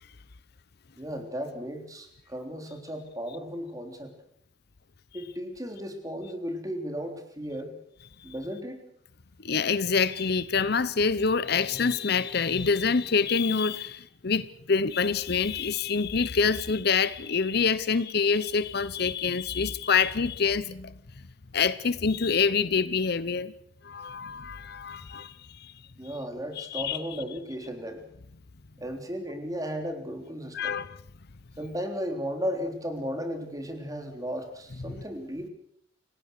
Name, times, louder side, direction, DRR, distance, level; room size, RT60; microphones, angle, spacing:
voice 1, 1.0-4.1 5.1-7.7 8.2-8.8 26.0-28.0 28.8-30.8 31.6-35.5, equal, 20° right, 5 dB, 3.5 m, -35 dB
voice 2, 9.4-20.9 21.5-23.5 23.8-25.3 25.6-25.7 26.6-27.0 30.5-31.0, left 5 dB, 55° left, 16 dB, 0.8 m, -26 dB
28.5 x 18.5 x 6.7 m, 0.70 s
head